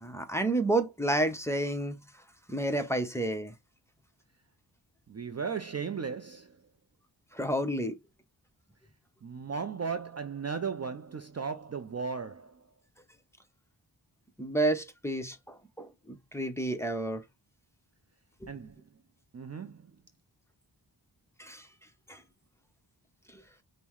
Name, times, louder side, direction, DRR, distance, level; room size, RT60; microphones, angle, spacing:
voice 1, 0.0-2.0 2.5-3.5 7.3-8.0 14.4-17.2 18.4-18.5 21.4-21.7 22.1-22.2 23.3-23.4, right 1 dB, 5° left, 0.7 m, -30 dB
voice 2, 5.1-6.6 9.2-12.7 18.5-18.8 19.3-19.9, right 6 dB, 35° right, 0.5 m, -36 dB
5.4 x 2.1 x 3.0 m
wide cardioid pair, 70°, 46 cm